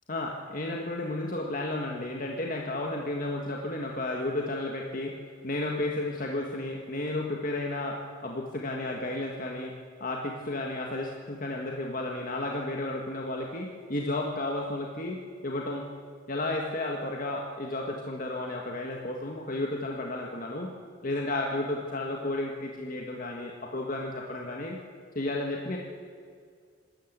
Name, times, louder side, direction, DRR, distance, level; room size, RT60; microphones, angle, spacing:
voice 1, 0.1-5.2 5.4-9.7 10.0-15.8 16.3-20.7 21.0-24.8 25.1-25.8, left 2 dB, 45° left, 0 dB, 1.7 m, -32 dB
26.5 x 13.5 x 8.2 m, 2.1 s
head